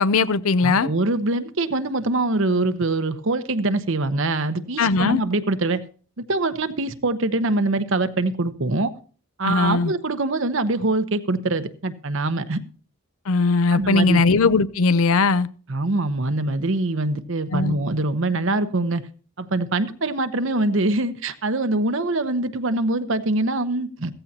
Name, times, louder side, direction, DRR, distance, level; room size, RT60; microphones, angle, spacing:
voice 1, 0.0-0.9 4.8-5.2 9.4-9.9 13.3-15.5 17.5-17.8, left 4 dB, 80° left, 0.6 m, -19 dB
voice 2, 0.6-5.8 6.2-8.9 9.4-12.6 13.7-14.2 15.7-19.0 19.4-24.1, right 2 dB, 65° right, 0.9 m, -23 dB
15.5 x 14.5 x 2.8 m
head